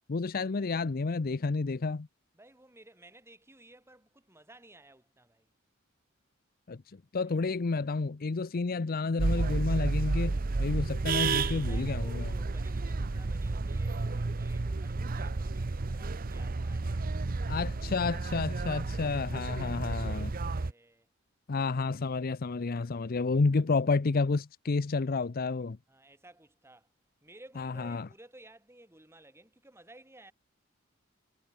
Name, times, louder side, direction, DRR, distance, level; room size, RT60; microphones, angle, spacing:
voice 1, 0.1-2.1 6.7-6.8 7.1-12.3 17.5-20.3 21.5-25.8 27.6-28.1, left 4 dB, 45° left, 0.6 m, -30 dB
voice 2, 2.3-5.5 7.2-7.4 11.1-17.1 18.5-21.1 25.9-26.9 27.2-30.3, right 1 dB, 10° right, 5.2 m, -56 dB
sound 1, 9.2-20.7, right 3 dB, 45° right, 0.7 m, -31 dB
head